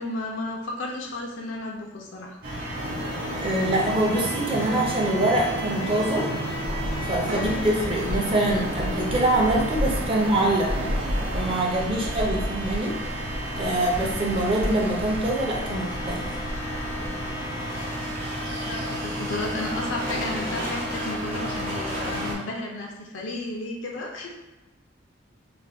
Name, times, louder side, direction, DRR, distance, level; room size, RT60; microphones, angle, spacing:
voice 1, 0.0-2.4 7.4-7.6 18.5-24.3, left 2 dB, 85° left, -1 dB, 0.5 m, -33 dB
sound 1, 2.4-22.4, equal, 50° right, 0.9 m, -32 dB
sound 2, 2.7-11.6, right 2 dB, 75° right, 0.5 m, -34 dB
voice 2, 3.3-6.3 7.0-10.7 11.3-12.9 13.6-16.3, right 1 dB, 30° right, -2 dB, 0.5 m, -24 dB
sound 3, 6.5-17.3, left 1 dB, 30° left, 0.3 m, -33 dB
2.5 x 2.2 x 3.3 m, 1.1 s
head